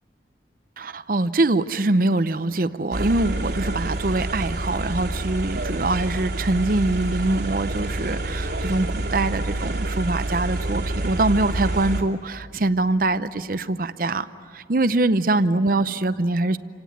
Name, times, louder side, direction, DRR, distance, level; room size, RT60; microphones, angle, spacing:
voice 1, 0.8-14.3 14.5-16.6, right 2 dB, 50° right, 13 dB, 0.7 m, -23 dB
sound 1, 2.9-12.0, right 2 dB, 75° right, 2.5 m, -28 dB
28.0 x 17.5 x 9.2 m, 2.6 s
head